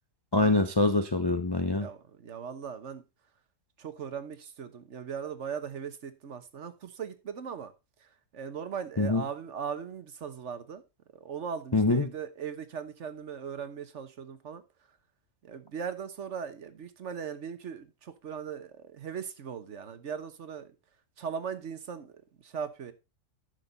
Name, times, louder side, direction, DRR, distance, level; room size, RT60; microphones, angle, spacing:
voice 1, 0.3-1.9 9.0-9.2 11.7-12.1, left 2 dB, 30° left, 0.4 m, -25 dB
voice 2, 1.8-3.0 3.8-7.7 8.0-10.8 11.1-14.6 15.4-20.7 21.2-22.9, right 7 dB, 55° right, 1.2 m, -39 dB
10.5 x 6.7 x 4.0 m
omnidirectional pair, 1.6 m